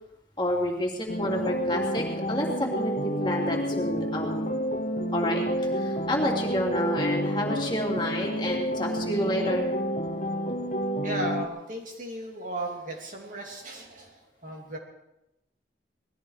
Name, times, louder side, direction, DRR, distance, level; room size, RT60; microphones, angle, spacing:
voice 1, 0.4-4.5 5.1-9.7, left 1 dB, 25° left, -1 dB, 3.0 m, -29 dB
sound 1, 1.1-11.5, equal, 45° left, 1.2 m, -29 dB
voice 2, 11.0-14.8, right 1 dB, 45° right, 0 dB, 2.9 m, -36 dB
20.0 x 14.5 x 4.9 m, 0.90 s
head